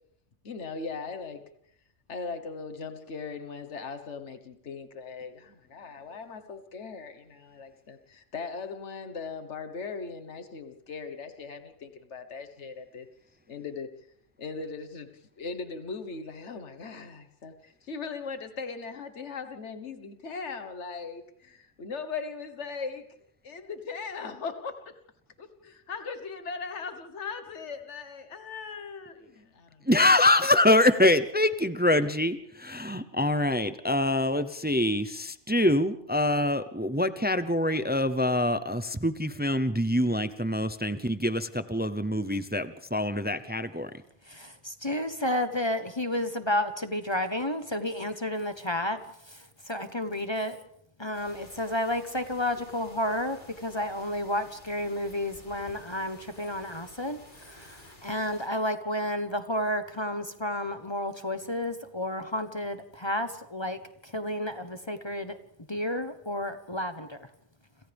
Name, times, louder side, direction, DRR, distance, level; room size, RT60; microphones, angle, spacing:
voice 1, 0.4-1.5 2.1-13.1 13.5-13.9 14.4-15.1 15.4-23.1 23.4-25.0 25.4-29.9, left 5 dB, 75° left, 8 dB, 1.7 m, -39 dB
voice 2, 29.9-43.9, left 1 dB, 10° right, 11 dB, 0.6 m, -25 dB
voice 3, 44.2-50.6 51.0-65.4 65.7-67.3, left 1 dB, 25° left, 8 dB, 1.1 m, -31 dB
sound 1, 51.1-58.5, left 1 dB, 40° left, 4.0 m, -52 dB
30.0 x 27.0 x 3.5 m, 0.73 s
omnidirectional pair, 1.2 m